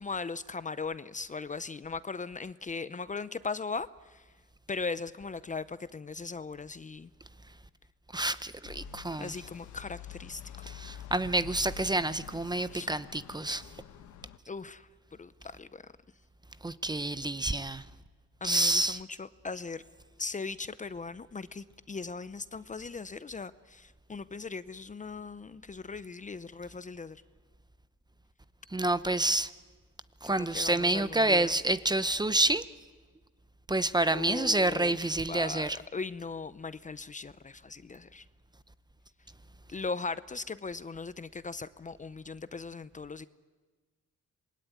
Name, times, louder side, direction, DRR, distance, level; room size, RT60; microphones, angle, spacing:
voice 1, 0.0-4.2 4.7-7.1 9.2-10.4 12.7-12.9 14.5-14.9 15.2-15.8 18.4-19.8 20.2-27.2 30.2-31.5 34.1-38.2 39.7-43.3, left 4 dB, 25° left, 0.8 m, -39 dB
voice 2, 8.1-9.3 10.6-13.6 16.6-17.8 18.4-19.0 28.7-29.5 30.2-32.6 33.7-35.8, right 2 dB, 15° right, 0.8 m, -28 dB
sound 1, 8.6-14.4, left 8 dB, 75° left, 1.6 m, -46 dB
26.5 x 21.0 x 9.4 m
cardioid pair, 90°, 30 cm